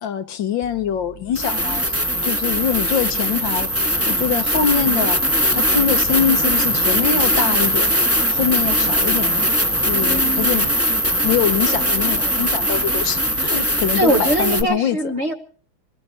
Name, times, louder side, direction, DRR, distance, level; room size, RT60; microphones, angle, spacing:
voice 1, 0.0-1.9 2.2-3.7 4.1-5.2 5.5-7.9 8.3-9.6 9.9-10.7 11.2-15.0, left 8 dB, 65° left, 1.7 m, -23 dB
sound 1, 0.6-0.7 1.3-14.6, equal, 10° right, 1.3 m, -20 dB
voice 2, 10.0-10.5 11.7-12.2 13.9-15.3, right 1 dB, 35° right, 1.3 m, -22 dB
25.5 x 18.0 x 2.9 m
omnidirectional pair, 2.3 m